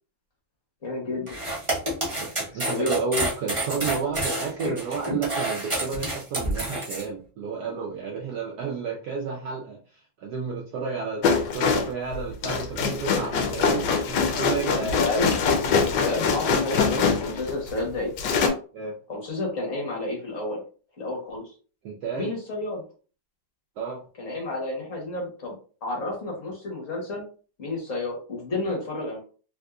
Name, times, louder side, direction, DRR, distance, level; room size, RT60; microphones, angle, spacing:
voice 1, 0.8-1.4 2.6-3.0 4.6-4.7 5.1-5.2 14.8-15.3 16.0-18.1 19.1-20.6 21.0-21.5 22.1-22.8 24.2-25.6 25.8-27.3 27.6-29.2, left 2 dB, 45° left, -1 dB, 1.4 m, -30 dB
sound 1, 1.3-7.0, right 1 dB, 20° right, 0.9 m, -28 dB
voice 2, 2.4-15.0 18.7-19.0 21.8-22.3 23.8-24.0, right 5 dB, 70° right, -1 dB, 1.0 m, -31 dB
sound 2, 11.2-17.8 18.2-18.5, left 5 dB, 70° left, 1.2 m, -24 dB
3.6 x 2.7 x 2.3 m, 0.38 s
omnidirectional pair, 2.1 m